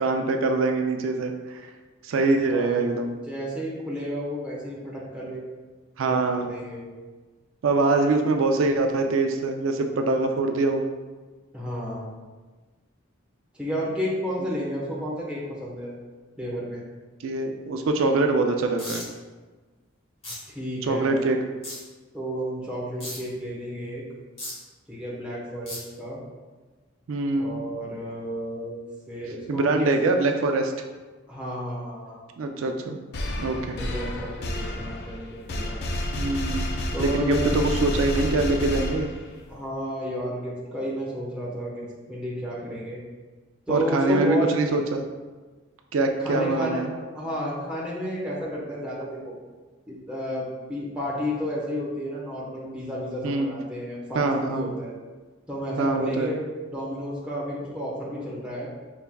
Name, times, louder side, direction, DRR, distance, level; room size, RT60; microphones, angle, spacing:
voice 1, 0.0-1.7 2.0-3.1 6.0-6.5 7.6-10.9 17.2-19.0 20.8-21.4 27.1-27.6 29.5-30.7 32.4-33.0 33.4-33.8 36.2-39.1 43.7-45.1 45.9-46.9 53.2-53.5 54.1-54.7 55.8-56.3, right 3 dB, 85° right, 4 dB, 0.4 m, -24 dB
voice 2, 2.4-2.9 3.3-5.4 6.0-6.8 11.5-12.1 13.5-15.9 16.4-16.8 20.5-21.2 22.1-24.0 24.9-26.2 27.4-28.8 29.1-29.9 31.3-32.2 33.6-35.8 36.9-37.5 39.5-43.0 43.7-44.5 46.2-49.3 49.9-54.9 55.5-56.4 56.7-58.7, equal, 5° right, -6 dB, 1.0 m, -32 dB
sound 1, 18.8-19.0 20.2-20.3 21.6-21.8 23.0-23.2 24.4-24.5 25.7-25.8, left 1 dB, 30° left, 1.5 m, -35 dB
sound 2, 33.1-39.5, left 1 dB, 55° left, 0.4 m, -30 dB
5.7 x 3.3 x 2.2 m, 1.3 s
head